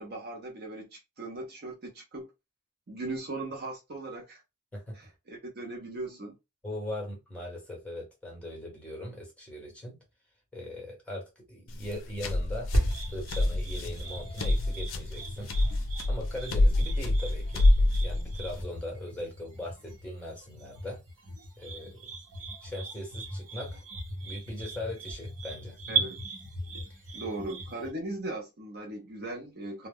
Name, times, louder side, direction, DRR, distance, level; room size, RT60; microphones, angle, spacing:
voice 1, 0.0-2.3 2.9-4.4 4.9-6.4 25.9-26.2 27.1-29.9, right 2 dB, 45° right, 0.6 m, -38 dB
voice 2, 6.6-10.0 10.5-12.7 13.1-15.5 16.1-21.0 21.6-22.0 22.6-23.8 24.2-25.8, left 1 dB, 5° left, 1.0 m, -40 dB
sound 1, 11.7-18.6, left 1 dB, 60° left, 0.4 m, -27 dB
sound 2, 12.7-27.9, right 2 dB, 75° right, 0.9 m, -37 dB
2.1 x 2.0 x 3.4 m
head